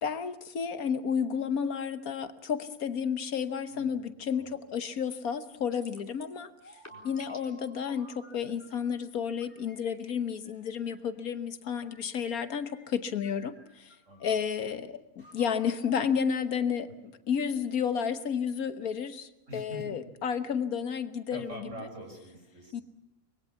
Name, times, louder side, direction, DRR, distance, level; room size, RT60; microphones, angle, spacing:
voice 1, 0.0-6.5 7.0-21.7 22.7-22.8, left 7 dB, 75° left, 11 dB, 1.6 m, -32 dB
voice 2, 3.7-4.5 6.9-7.0 14.0-14.4 19.5-20.0 21.3-22.8, right 1 dB, 55° right, 4 dB, 6.2 m, -45 dB
sound 1, 5.7-6.4 6.6-7.7, left 1 dB, 10° left, 4.1 m, -51 dB
sound 2, 6.2-8.9 9.4-11.2 11.8-13.0 13.2-14.7 15.2-17.0, right 1 dB, 25° left, 4.7 m, -57 dB
24.5 x 21.5 x 7.1 m, 0.91 s
omnidirectional pair, 1.6 m